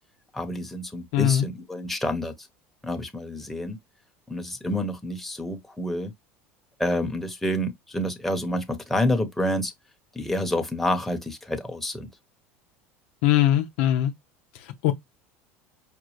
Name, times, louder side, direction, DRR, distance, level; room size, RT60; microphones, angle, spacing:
voice 1, 0.3-2.3 2.8-3.8 4.3-6.1 6.8-9.7 10.1-12.1, left 1 dB, 5° left, 1.1 m, -28 dB
voice 2, 1.1-1.5 13.2-14.1 14.6-14.9, left 12 dB, 70° left, 0.8 m, -21 dB
5.2 x 2.5 x 3.2 m
hypercardioid pair, 85°, 7 cm